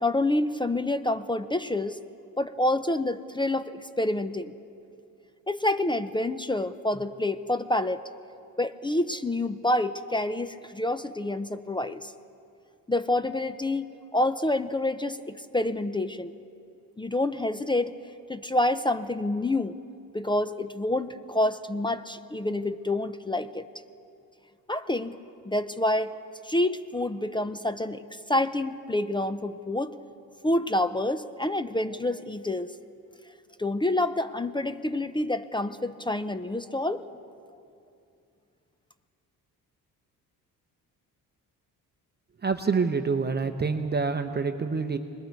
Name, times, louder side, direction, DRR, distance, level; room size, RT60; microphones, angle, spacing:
voice 1, 0.0-2.0 2.4-4.5 5.5-8.1 8.6-12.1 12.9-13.9 14.1-16.3 17.0-17.9 18.3-19.8 20.1-23.7 24.7-25.2 25.5-26.2 26.4-30.0 30.4-32.7 33.6-37.1, left 1 dB, 15° left, 11 dB, 0.5 m, -27 dB
voice 2, 42.4-45.0, right 5 dB, 30° right, 6 dB, 0.8 m, -27 dB
28.5 x 21.0 x 4.7 m, 2.5 s
cardioid pair, 105°, 37 cm